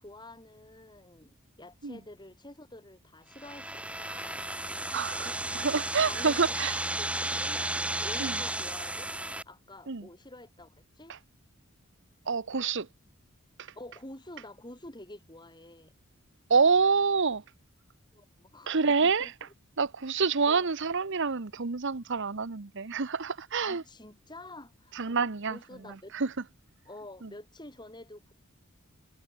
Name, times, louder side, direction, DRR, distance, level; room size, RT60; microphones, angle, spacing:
voice 1, 0.0-4.5 4.9-5.4 6.0-6.4 7.0-7.6 8.0-11.1 13.8-15.9 18.1-18.7 19.2-19.3 20.5-20.7 23.6-26.1 26.9-28.3, left 1 dB, 20° left, 5.7 m, -48 dB
sound 1, 3.3-9.4, right 1 dB, 5° right, 3.5 m, -34 dB
voice 2, 4.9-6.8 8.2-8.4 9.9-10.1 11.1-11.2 12.3-12.9 13.6-13.7 16.5-17.4 18.7-19.3 19.8-23.8 24.9-26.3 27.2-27.3, right 5 dB, 55° right, 1.0 m, -27 dB
head